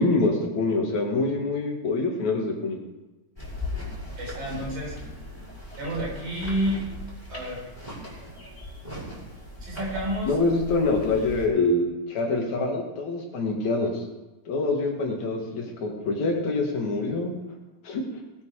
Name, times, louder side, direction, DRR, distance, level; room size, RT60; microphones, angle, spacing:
voice 1, 0.0-2.8 10.3-14.0 14.5-17.3 17.8-18.0, left 3 dB, 70° left, 0 dB, 3.6 m, -25 dB
sound 1, 3.4-11.5, left 2 dB, 10° left, 6.2 m, -38 dB
voice 2, 4.2-5.0 5.8-6.8 7.3-7.7 9.6-10.4, right 1 dB, 80° right, -2 dB, 6.5 m, -30 dB
19.5 x 9.7 x 4.9 m, 1.1 s
omnidirectional pair, 3.4 m